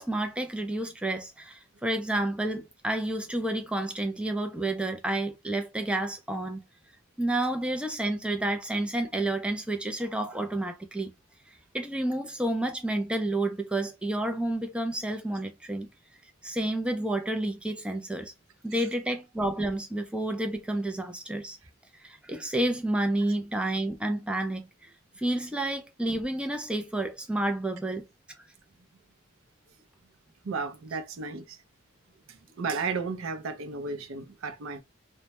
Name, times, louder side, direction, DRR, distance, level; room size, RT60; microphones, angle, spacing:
voice 1, 0.0-6.6 7.2-11.1 11.7-15.9 16.4-18.3 18.6-21.6 21.9-28.0, right 1 dB, 5° right, 0.3 m, -30 dB
voice 2, 30.4-31.6 32.3-34.8, right 4 dB, 70° right, 0.4 m, -34 dB
2.1 x 2.1 x 2.8 m
head